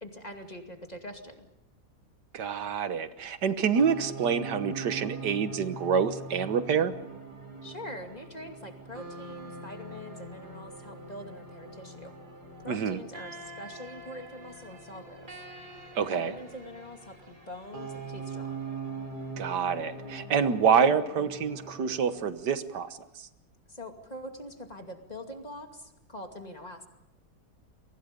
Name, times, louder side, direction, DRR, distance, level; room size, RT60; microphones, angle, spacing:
voice 1, 0.0-1.5 7.6-12.2 12.6-15.4 16.1-18.6 23.7-26.9, left 1 dB, 25° left, 4 dB, 2.5 m, -44 dB
voice 2, 2.3-6.9 12.7-13.0 16.0-16.3 19.4-23.3, right 6 dB, 85° right, 11 dB, 1.8 m, -27 dB
sound 1, 3.7-22.2, right 3 dB, 70° right, 4.7 m, -42 dB
30.0 x 23.5 x 5.3 m, 0.87 s
omnidirectional pair, 1.7 m